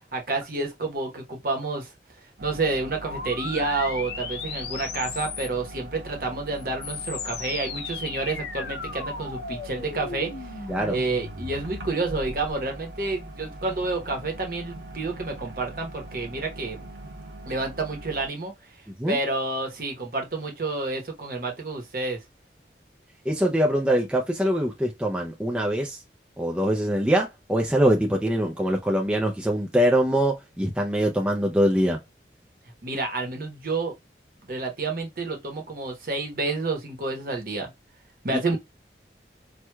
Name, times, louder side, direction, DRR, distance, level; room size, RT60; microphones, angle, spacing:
voice 1, 0.1-1.9 2.4-10.3 10.6-16.9 17.5-18.5 19.1-22.2 32.8-33.9 34.4-37.7 38.2-38.6, right 3 dB, 50° right, 0.9 m, -29 dB
sound 1, 2.4-18.3, right 1 dB, 85° right, 0.8 m, -42 dB
sound 2, 3.1-5.7 6.6-12.5, left 5 dB, 75° left, 0.7 m, -36 dB
voice 2, 23.3-26.0 26.4-32.0 38.3-38.6, equal, 5° right, 0.4 m, -23 dB
4.5 x 2.2 x 2.2 m
head